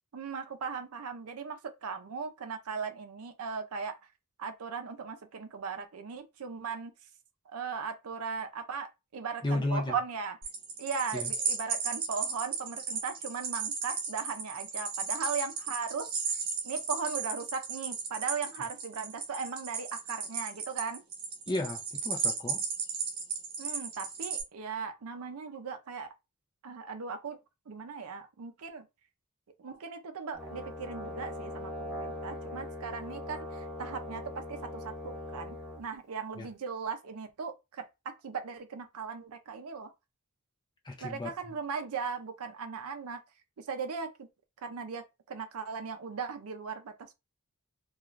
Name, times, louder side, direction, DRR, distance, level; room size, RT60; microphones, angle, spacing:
voice 1, 0.1-4.0 4.4-6.9 7.5-10.4 10.8-21.0 23.6-26.1 26.6-27.4 27.7-28.9 29.6-39.9 41.0-43.2 43.6-44.3 44.6-47.1, right 5 dB, 75° right, 0.5 m, -38 dB
voice 2, 9.4-9.9 11.1-11.3 21.5-22.6 36.4-36.5 40.9-41.3, left 1 dB, 20° left, 0.5 m, -33 dB
sound 1, 10.4-24.4, right 5 dB, 45° right, 0.8 m, -35 dB
Brass instrument, 30.3-35.8, left 1 dB, ahead, 0.9 m, -40 dB
2.4 x 2.3 x 3.1 m
head